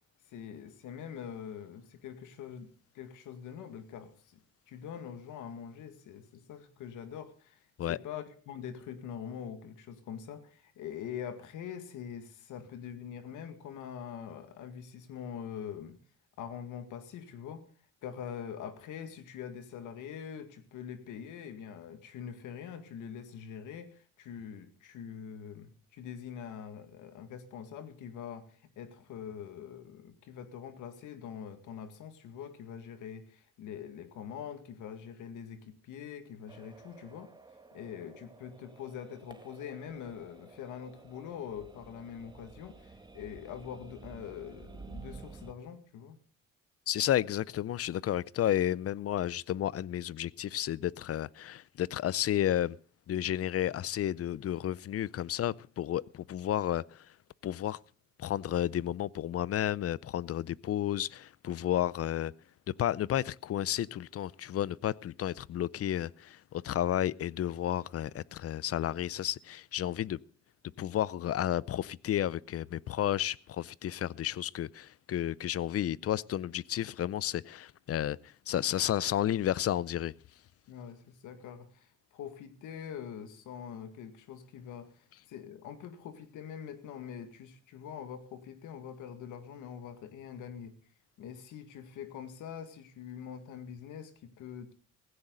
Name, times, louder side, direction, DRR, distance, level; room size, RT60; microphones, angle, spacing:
voice 1, 0.3-2.7 2.9-4.4 4.7-16.0 16.4-17.7 18.0-37.3 37.7-46.2 80.7-90.7 91.2-94.7, left 8 dB, 90° left, 2.0 m, -44 dB
sound 1, 36.5-45.5, right 4 dB, 15° right, 1.6 m, -52 dB
voice 2, 46.9-52.8 53.1-57.1 57.4-57.8 58.2-62.3 62.8-70.2 70.8-80.1, left 11 dB, 50° left, 0.6 m, -32 dB
16.0 x 15.5 x 3.9 m
cardioid pair, 90°, 30 cm